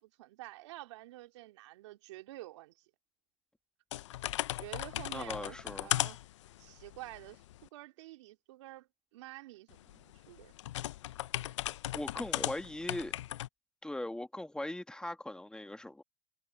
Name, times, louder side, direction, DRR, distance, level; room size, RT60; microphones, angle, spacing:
voice 1, 0.0-2.7 4.6-6.2 6.6-7.4 7.7-10.5, right 17 dB, 75° right, 3.1 m, -49 dB
sound 1, 3.9-7.7 9.7-13.5, left 14 dB, 80° left, 0.7 m, -37 dB
voice 2, 5.1-5.9 11.9-13.2 13.8-16.0, left 1 dB, 5° left, 2.1 m, -39 dB
hypercardioid pair, 105°, 15 cm